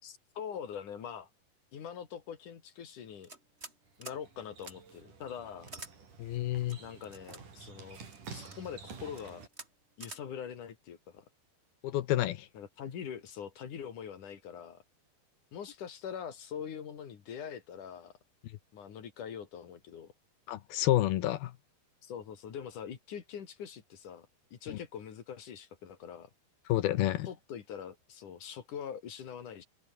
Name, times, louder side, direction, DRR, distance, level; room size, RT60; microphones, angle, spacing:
voice 1, 0.0-1.3 1.7-3.3 4.0-5.7 6.8-8.0 8.3-9.5 10.0-11.2 12.5-14.8 15.5-18.1 18.7-20.1 22.0-24.3 24.5-26.3 27.3-29.7, left 8 dB, 50° left, 3.7 m, -43 dB
sound 1, 3.2-3.8 4.0-4.2 4.6-4.7 5.7-5.9 6.7-7.4 8.1-8.6 9.1-9.2 9.5-9.7 10.0-10.2, right 3 dB, 15° right, 3.0 m, -47 dB
sound 2, 3.9-9.5, right 5 dB, 45° right, 5.8 m, -50 dB
voice 2, 6.2-6.8 11.8-12.5 20.5-21.5 26.7-27.3, left 14 dB, 70° left, 2.5 m, -29 dB
omnidirectional pair, 5.2 m